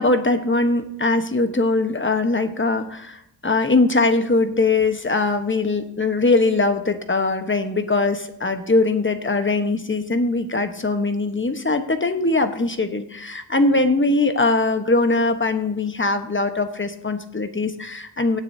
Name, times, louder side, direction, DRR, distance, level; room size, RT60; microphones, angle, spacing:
voice 1, 0.0-18.4, left 3 dB, 25° left, 8 dB, 1.2 m, -21 dB
17.5 x 9.2 x 2.8 m, 0.73 s
wide cardioid pair, 80°, 47 cm